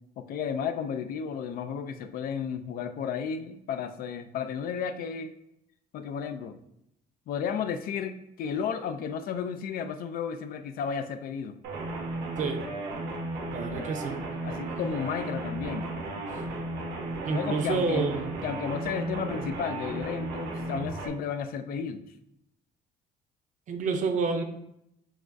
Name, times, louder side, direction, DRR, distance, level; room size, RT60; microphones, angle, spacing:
voice 1, 0.2-5.3 5.9-6.6 7.3-11.6 14.4-15.9 17.3-18.2 18.4-22.0, left 7 dB, 60° left, 10 dB, 0.4 m, -33 dB
sound 1, 11.6-21.1, right 2 dB, 75° right, 0.8 m, -34 dB
voice 2, 13.5-14.2 17.3-18.3 23.7-24.4, right 4 dB, 50° right, 5 dB, 0.6 m, -28 dB
5.8 x 2.4 x 2.5 m, 0.79 s
cardioid pair, 110°, 17 cm